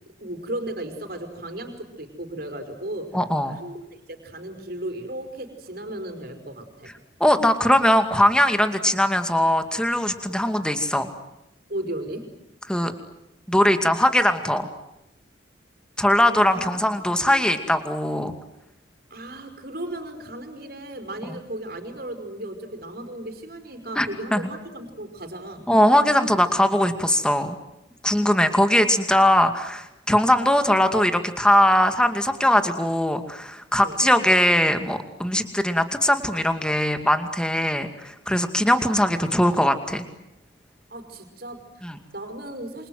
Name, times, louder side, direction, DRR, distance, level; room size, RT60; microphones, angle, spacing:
voice 1, 0.2-3.2 3.6-6.9 10.3-10.4 11.7-12.3 16.5-16.8 17.2-17.6 19.1-25.7 33.8-34.0 40.9-42.9, right 1 dB, 55° right, 7 dB, 5.1 m, -35 dB
voice 2, 3.1-3.6 7.2-11.1 12.7-12.9 13.5-14.7 16.0-18.3 24.0-24.4 25.7-27.6 28.0-40.1 41.8-42.0, left 1 dB, 5° left, 8 dB, 2.3 m, -20 dB
28.5 x 26.5 x 7.9 m, 0.89 s
head